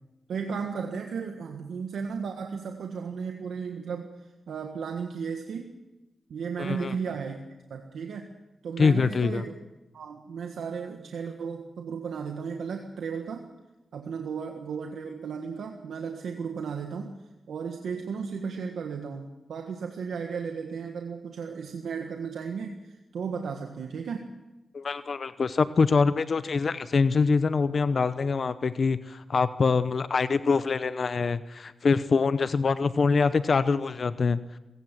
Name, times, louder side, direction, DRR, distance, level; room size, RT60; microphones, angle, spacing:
voice 1, 0.3-5.7 6.3-8.3 8.6-9.5 9.9-13.4 13.9-17.1 17.5-24.3, right 6 dB, 90° right, 3 dB, 1.5 m, -35 dB
voice 2, 6.6-7.0 8.8-9.4 24.7-34.5, left 4 dB, 55° left, 13 dB, 0.7 m, -24 dB
24.5 x 16.0 x 7.5 m, 1.0 s
cardioid pair, 70°, 0 cm